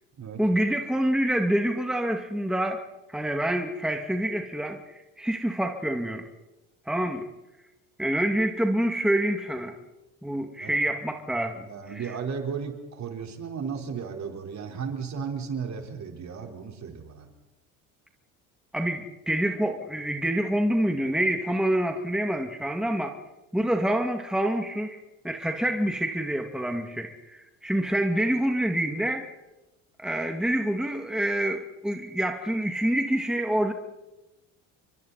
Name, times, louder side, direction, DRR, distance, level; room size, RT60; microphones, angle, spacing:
voice 1, 0.4-2.8 3.1-6.2 6.9-7.3 8.0-9.8 10.2-12.1 18.7-23.1 23.5-25.0 25.2-29.3 30.0-33.7, right 1 dB, ahead, 4 dB, 2.2 m, -27 dB
voice 2, 11.6-17.3, right 6 dB, 45° right, 3 dB, 4.4 m, -35 dB
30.0 x 24.0 x 4.2 m, 1.0 s
supercardioid pair, 80°, 38 cm